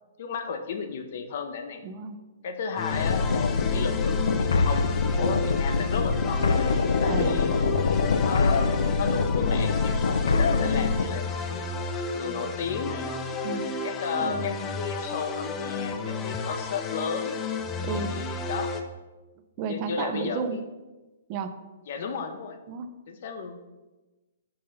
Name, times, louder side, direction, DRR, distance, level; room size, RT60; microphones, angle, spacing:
voice 1, 0.2-1.8 2.4-6.4 7.0-7.6 8.2-8.7 9.0-11.7 12.1-13.3 13.8-17.3 17.9-18.7 19.6-20.6 21.9-22.6 23.1-23.6, left 6 dB, 55° left, 7 dB, 0.7 m, -33 dB
voice 2, 1.8-2.2 7.1-7.4 13.4-13.7 14.2-14.5 17.8-18.2 19.6-20.6 21.3-21.6 22.7-22.9, right 6 dB, 40° right, 9 dB, 0.5 m, -32 dB
sound 1, 2.8-18.8, left 4 dB, 20° left, 0.6 m, -32 dB
sound 2, 2.9-11.1, left 4 dB, 70° left, 0.3 m, -24 dB
5.5 x 4.2 x 5.3 m, 1.1 s
figure-of-eight pair, 120°, 0 cm